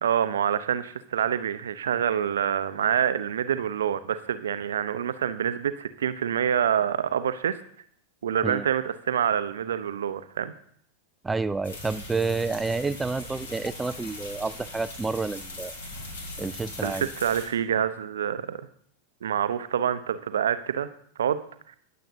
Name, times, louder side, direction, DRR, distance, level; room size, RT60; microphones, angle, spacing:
voice 1, 0.0-7.6 8.2-10.5 16.8-18.6 19.2-20.9 21.2-21.4, right 9 dB, 65° right, 13 dB, 0.6 m, -26 dB
voice 2, 11.2-15.7 16.4-17.1, right 3 dB, 10° right, 13 dB, 0.3 m, -29 dB
sound 1, 11.6-17.5, left 2 dB, 65° left, 2.9 m, -40 dB
19.0 x 7.6 x 2.8 m, 0.63 s
figure-of-eight pair, 90°, 0 cm